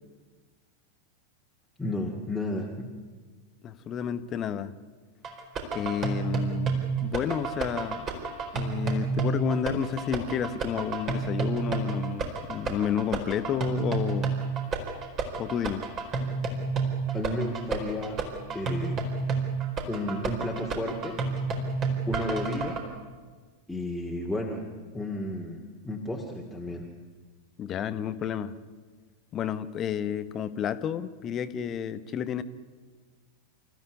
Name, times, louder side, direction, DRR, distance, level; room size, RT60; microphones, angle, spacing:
voice 1, 1.8-2.9 17.1-18.2 18.5-19.0 19.9-21.2 22.1-22.9 23.7-24.7 24.9-26.9, left 1 dB, 5° left, -1 dB, 2.5 m, -32 dB
voice 2, 3.6-4.7 5.7-6.7 7.0-8.1 8.5-14.4 15.4-15.8 22.3-22.4 27.6-28.5 29.3-32.4, left 8 dB, 30° left, 13 dB, 1.2 m, -31 dB
sound 1, 5.2-22.8, right 4 dB, 30° right, 4.4 m, -30 dB
28.5 x 15.0 x 9.6 m, 1.4 s
figure-of-eight pair, 90°, 0 cm